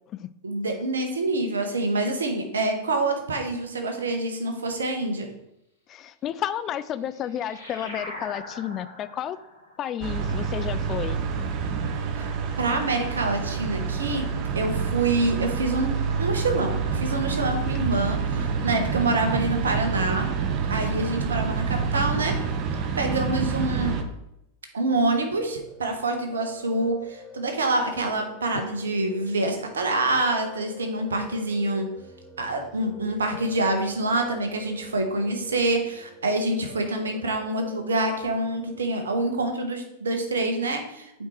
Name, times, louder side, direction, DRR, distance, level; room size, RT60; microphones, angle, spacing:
voice 1, 0.4-5.3 12.1-12.3 12.6-14.3 14.5-20.3 20.7-22.3 23.0-23.9 24.7-31.9 32.4-41.3, right 2 dB, 70° right, 5 dB, 1.3 m, -26 dB
voice 2, 5.9-9.4 9.8-11.2 23.0-23.1 28.5-28.6, left 10 dB, 30° left, 14 dB, 0.4 m, -31 dB
sound 1, 6.6-11.6, left 1 dB, 80° left, 2.3 m, -43 dB
sound 2, 10.0-24.0, right 6 dB, 40° right, 0.8 m, -27 dB
Piano, 25.1-38.8, equal, 5° right, 1.0 m, -46 dB
8.1 x 4.5 x 4.5 m, 0.82 s
figure-of-eight pair, 90°, 0 cm